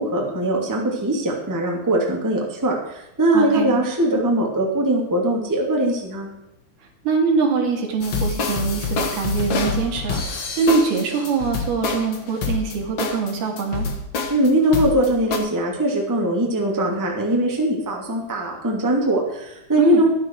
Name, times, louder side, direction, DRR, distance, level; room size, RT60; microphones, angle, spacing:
voice 1, 0.0-6.3 14.3-20.1, right 1 dB, 5° right, -1 dB, 1.7 m, -21 dB
voice 2, 3.3-3.8 7.0-13.9 19.8-20.0, right 5 dB, 80° right, 1 dB, 4.2 m, -23 dB
sound 1, 8.0-15.4, left 4 dB, 55° left, 1.4 m, -26 dB
12.0 x 11.5 x 4.7 m, 0.90 s
omnidirectional pair, 4.4 m